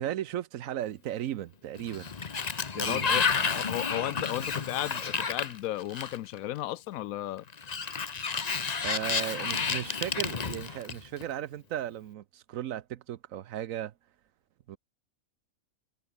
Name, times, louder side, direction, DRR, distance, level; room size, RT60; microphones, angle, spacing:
voice 1, 0.0-2.1 2.8-3.5 8.8-13.9 14.7-14.8, right 11 dB, 70° right, 1.1 m, -36 dB
Sliding door, 1.8-6.4 7.5-11.2, left 5 dB, 35° left, 0.9 m, -31 dB
voice 2, 2.7-3.3 3.5-7.4, left 14 dB, 80° left, 1.0 m, -34 dB
omnidirectional pair, 1.5 m